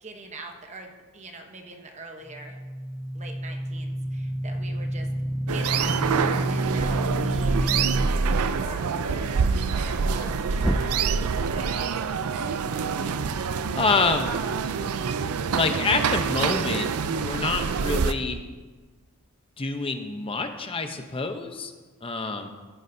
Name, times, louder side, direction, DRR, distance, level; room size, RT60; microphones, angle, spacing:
voice 1, 0.0-2.6 3.1-5.1 5.5-12.3, right 2 dB, 30° right, 3 dB, 1.0 m, -43 dB
sound 1, 2.3-8.1 10.6-11.4, equal, ahead, 0.3 m, -29 dB
sound 2, 5.5-18.1, right 5 dB, 90° right, 0.5 m, -26 dB
voice 2, 13.7-14.3 15.5-16.9 17.2-18.4 19.6-21.7 22.0-22.5, left 3 dB, 25° left, 6 dB, 0.7 m, -27 dB
14.5 x 9.9 x 2.7 m, 1.3 s
head